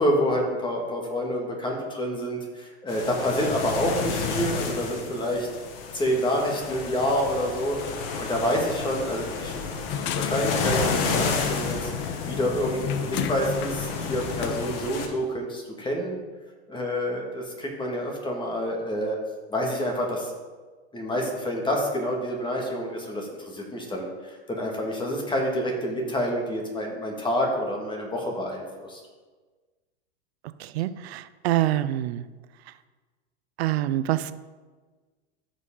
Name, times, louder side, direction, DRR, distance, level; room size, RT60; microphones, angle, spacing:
voice 1, 0.0-5.5 5.9-9.6 10.1-16.2 16.7-19.2 19.5-20.3 20.9-29.0, equal, 15° left, 0 dB, 2.1 m, -28 dB
sound 1, 2.9-15.1, left 4 dB, 60° left, 1.6 m, -31 dB
sound 2, 9.9-15.2, left 9 dB, 35° left, 0.6 m, -33 dB
voice 2, 30.6-32.2 33.6-34.3, right 14 dB, 65° right, 14 dB, 0.6 m, -26 dB
13.5 x 5.2 x 3.9 m, 1.3 s
hypercardioid pair, 110°, 33 cm